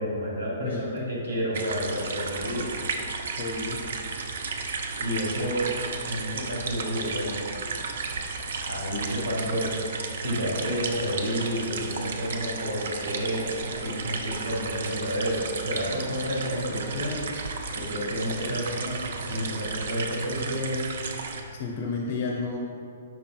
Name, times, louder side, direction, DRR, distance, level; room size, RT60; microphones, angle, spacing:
voice 1, 0.0-2.6 5.0-5.6 6.0-7.3 8.6-9.7 10.2-17.2 17.7-20.8, equal, 85° right, -4 dB, 1.4 m, -30 dB
voice 2, 0.6-1.1 3.4-3.8 21.6-22.6, left 4 dB, 55° left, 0 dB, 0.5 m, -31 dB
sound 1, 1.5-21.4, right 4 dB, 65° right, 0.4 m, -34 dB
5.0 x 4.3 x 2.2 m, 2.4 s
hypercardioid pair, 125°, 0 cm